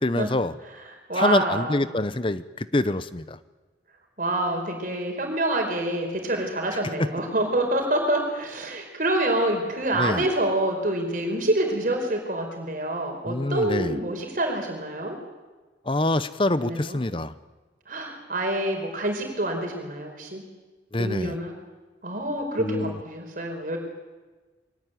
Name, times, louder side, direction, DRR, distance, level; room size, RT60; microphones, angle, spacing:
voice 1, 0.0-0.5 1.2-3.4 9.9-10.2 13.3-14.0 15.9-17.3 20.9-21.4 22.6-23.0, left 2 dB, 30° left, 14 dB, 0.8 m, -25 dB
voice 2, 1.1-1.8 4.2-15.2 16.6-17.0 17.9-20.4 21.0-21.5 22.0-23.8, right 1 dB, 45° right, 2 dB, 4.8 m, -27 dB
23.0 x 18.5 x 9.3 m, 1.3 s
head